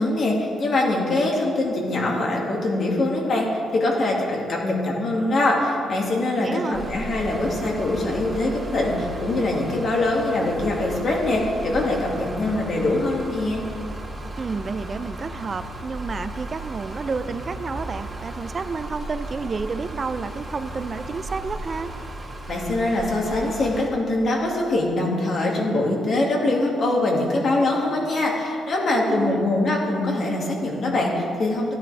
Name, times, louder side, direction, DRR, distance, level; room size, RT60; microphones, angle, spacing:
voice 1, 0.0-13.6 22.5-31.7, left 2 dB, 50° left, -2 dB, 2.2 m, -23 dB
voice 2, 6.4-6.8 14.4-21.9 29.1-29.5, right 4 dB, 35° right, 12 dB, 0.5 m, -30 dB
sound 1, 6.7-23.9, right 1 dB, 20° right, 2.4 m, -35 dB
13.0 x 10.5 x 3.5 m, 2.5 s
cardioid pair, 90°, 0 cm